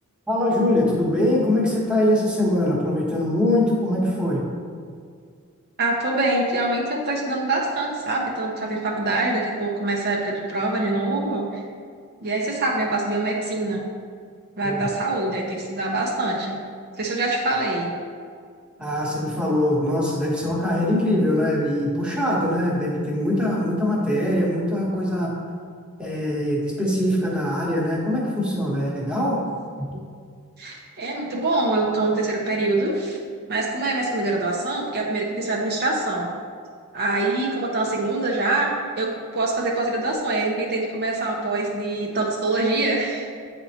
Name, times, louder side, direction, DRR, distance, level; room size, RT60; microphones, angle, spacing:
voice 1, 0.3-4.5 14.6-14.8 18.8-25.3 26.0-29.4 29.8-29.9, left 1 dB, 5° right, -5 dB, 1.1 m, -22 dB
voice 2, 5.8-11.6 12.2-13.8 14.6-16.6 17.0-17.9 30.6-33.2 33.5-36.3 36.9-38.7 39.0-43.3, right 2 dB, 45° right, -2 dB, 0.7 m, -24 dB
8.3 x 4.3 x 2.8 m, 2.1 s
head